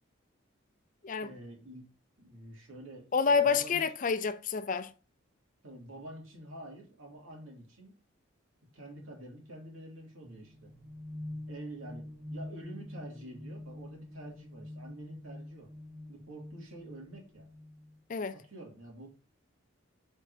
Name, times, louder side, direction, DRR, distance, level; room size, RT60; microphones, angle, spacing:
voice 1, 1.2-1.8 2.2-3.8 5.6-8.0 8.7-10.7 11.5-15.7 16.1-17.5 18.3-19.1, right 1 dB, 85° right, 2.4 m, -48 dB
voice 2, 3.1-4.9 18.1-18.3, left 5 dB, 40° left, 0.4 m, -28 dB
sound 1, 10.2-18.0, left 1 dB, 30° right, 1.2 m, -46 dB
7.9 x 4.4 x 2.7 m
head